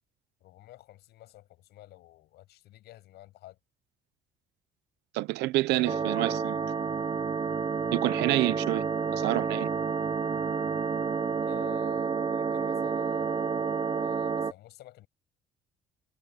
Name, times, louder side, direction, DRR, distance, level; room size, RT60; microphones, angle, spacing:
voice 1, 0.4-3.6 5.7-6.0 11.4-15.1, left 15 dB, 75° left, 7.8 m, -51 dB
voice 2, 5.1-6.6 7.9-8.9 9.1-9.7, right 18 dB, 85° right, 1.0 m, -28 dB
sound 1, 5.9-14.5, right 5 dB, 30° right, 1.3 m, -29 dB
cardioid pair, 110°, 17 cm